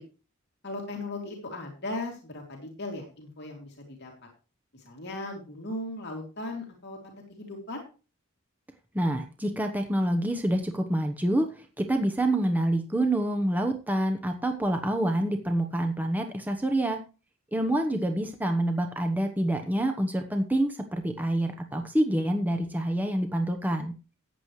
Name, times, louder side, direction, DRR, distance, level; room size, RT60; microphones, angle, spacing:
voice 1, 0.6-4.1 4.7-7.8, left 2 dB, 50° left, 1 dB, 2.7 m, -37 dB
voice 2, 8.9-17.0 17.5-23.9, right 1 dB, 10° right, 4 dB, 0.9 m, -27 dB
14.0 x 9.7 x 3.2 m, 0.33 s
head